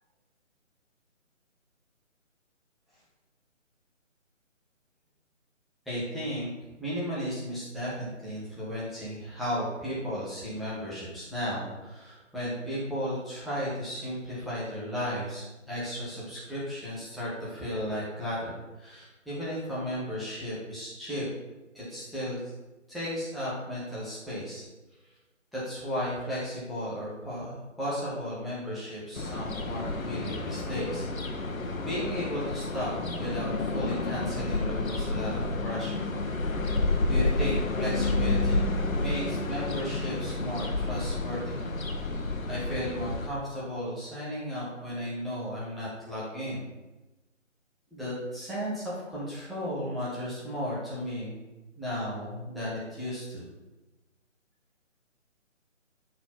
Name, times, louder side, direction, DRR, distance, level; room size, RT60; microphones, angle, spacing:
voice 1, 5.9-6.5 6.8-21.3 21.7-22.4 22.9-24.6 25.5-31.1 31.8-36.0 37.1-41.6 42.5-46.7 47.9-51.4 51.8-53.4, equal, ahead, -10 dB, 0.5 m, -34 dB
sound 1, 29.1-43.3, left 2 dB, 90° left, 1.1 m, -30 dB
10.5 x 3.9 x 5.6 m, 1.1 s
figure-of-eight pair, 165°, 40 cm